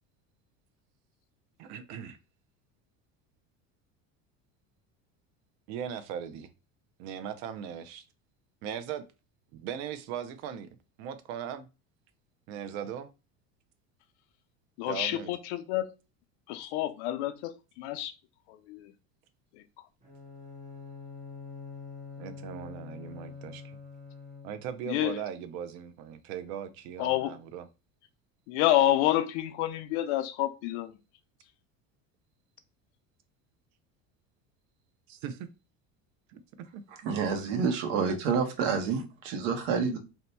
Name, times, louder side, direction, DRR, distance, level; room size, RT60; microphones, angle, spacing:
voice 1, 1.6-2.2 5.7-6.5 7.0-8.0 8.6-9.1 9.5-10.7 11.0-11.7 12.5-13.1 14.9-15.3 22.2-23.8 24.4-27.7 35.1-35.5 36.3-36.4 36.7-36.8 38.6-39.0, right 9 dB, 50° right, 0.5 m, -39 dB
voice 2, 14.8-15.9 16.5-18.1 18.5-18.9 19.5-19.6 24.9-25.2 27.0-27.4 28.5-31.0, left 13 dB, 85° left, 0.6 m, -28 dB
Bowed string instrument, 20.0-24.8, left 5 dB, 20° right, 0.9 m, -45 dB
voice 3, 37.0-40.0, right 5 dB, 85° right, 1.0 m, -28 dB
2.7 x 2.2 x 4.1 m
cardioid pair, 170°, 34 cm